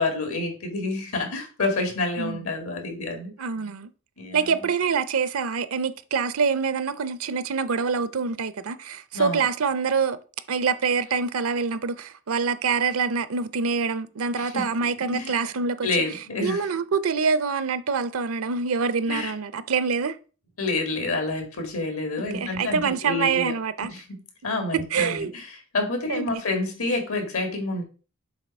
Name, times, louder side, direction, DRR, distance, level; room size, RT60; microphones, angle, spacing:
voice 1, 0.0-3.3 4.2-4.6 9.1-9.4 14.4-14.7 15.1-15.4 15.8-16.7 19.1-19.3 20.6-23.5 23.9-27.8, left 2 dB, 80° left, 2.0 m, -28 dB
voice 2, 3.4-3.9 4.3-10.2 10.5-15.9 16.4-20.2 22.3-23.9 24.9-25.3 26.1-26.4, right 5 dB, 75° right, 0.6 m, -25 dB
7.3 x 3.0 x 5.3 m
head